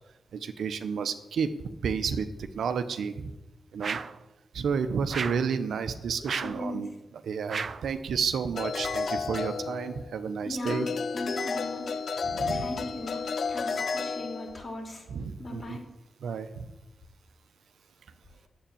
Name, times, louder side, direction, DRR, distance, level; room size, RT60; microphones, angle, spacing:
voice 1, 0.3-1.5 1.8-3.3 3.7-4.0 4.5-6.9 7.2-10.9 12.2-12.7 15.1-15.8 16.2-16.7, right 6 dB, 80° right, 9 dB, 0.8 m, -31 dB
sound 1, 3.8-4.2 5.1-5.5 6.3-6.6 7.5-7.9, right 5 dB, 60° right, 0.5 m, -34 dB
voice 2, 6.4-6.9 10.4-12.0 12.5-15.0 15.4-15.9, left 1 dB, 45° left, 0 dB, 4.4 m, -38 dB
sound 2, 8.6-10.3 10.7-14.6, left 5 dB, 65° left, 0.7 m, -32 dB
9.0 x 8.0 x 8.6 m, 0.98 s
supercardioid pair, 40°, 0 cm